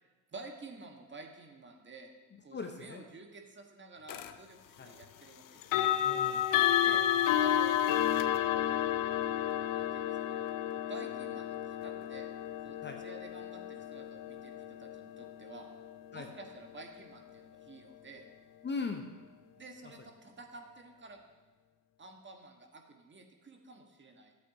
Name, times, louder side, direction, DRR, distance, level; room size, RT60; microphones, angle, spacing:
voice 1, 0.0-2.1 2.4-6.0 6.8-7.0 7.4-7.9 8.3-8.8 9.7-10.5 10.9-12.3 12.6-15.7 16.1-18.3 19.6-21.2 22.0-24.3, right 3 dB, 25° right, 3 dB, 1.5 m, -51 dB
voice 2, 2.3-3.0 4.8-4.9 6.0-6.8 12.8-13.0 16.1-16.3 18.6-19.1, left 4 dB, 25° left, 4 dB, 0.9 m, -40 dB
sound 1, 4.1-4.3 5.6-16.5, left 11 dB, 50° left, 0.6 m, -31 dB
13.0 x 8.1 x 2.8 m, 1.3 s
hypercardioid pair, 70°, 44 cm